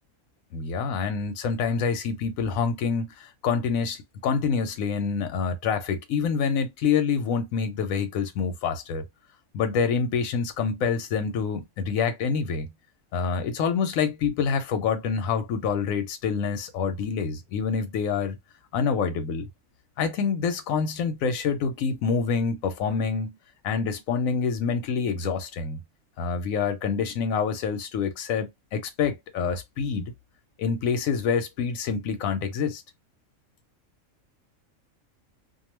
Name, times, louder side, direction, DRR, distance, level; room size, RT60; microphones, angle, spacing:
voice 1, 0.5-9.0 9.5-12.7 13.1-18.4 18.7-19.5 20.0-23.3 23.6-25.8 26.2-30.1 30.6-32.8, left 6 dB, 90° left, 1.0 m, -27 dB
2.5 x 2.3 x 3.0 m
omnidirectional pair, 1.4 m